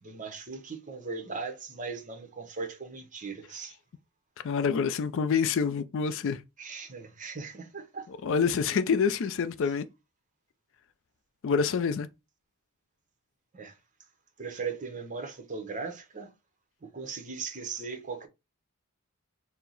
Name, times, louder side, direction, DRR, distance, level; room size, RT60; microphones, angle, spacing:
voice 1, 0.0-3.8 6.6-8.1 13.5-13.8 14.4-16.3 16.8-18.3, right 4 dB, 35° right, 0.8 m, -38 dB
voice 2, 4.4-6.4 8.2-9.9 11.4-12.1, left 6 dB, 60° left, 0.4 m, -27 dB
4.5 x 2.0 x 3.9 m
head